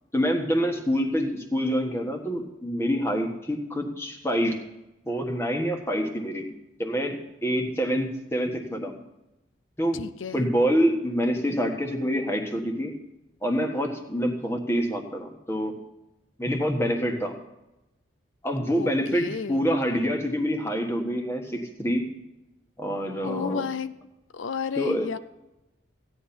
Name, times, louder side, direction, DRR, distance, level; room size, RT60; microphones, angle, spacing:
voice 1, 0.1-4.5 5.1-6.5 6.8-7.2 7.4-9.0 9.8-10.0 10.3-12.9 13.4-15.8 16.4-17.4 18.4-22.0 22.8-23.6 24.8-25.1, equal, 15° left, 3 dB, 1.5 m, -26 dB
voice 2, 9.9-10.5 18.7-19.7 23.2-23.9 24.3-25.2, left 6 dB, 80° left, 13 dB, 0.5 m, -32 dB
16.0 x 9.8 x 4.3 m, 0.94 s
head